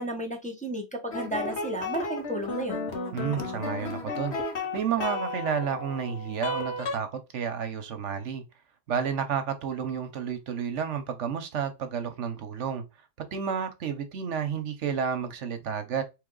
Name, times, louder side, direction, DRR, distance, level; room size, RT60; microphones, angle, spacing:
voice 1, 0.0-2.9, right 1 dB, 5° left, 0.9 m, -33 dB
sound 1, 1.1-7.0, left 3 dB, 65° left, 1.4 m, -33 dB
voice 2, 3.1-4.4 4.7-8.4 8.9-12.8 13.3-16.0, right 7 dB, 75° right, 1.1 m, -31 dB
4.0 x 3.1 x 3.8 m
omnidirectional pair, 1.2 m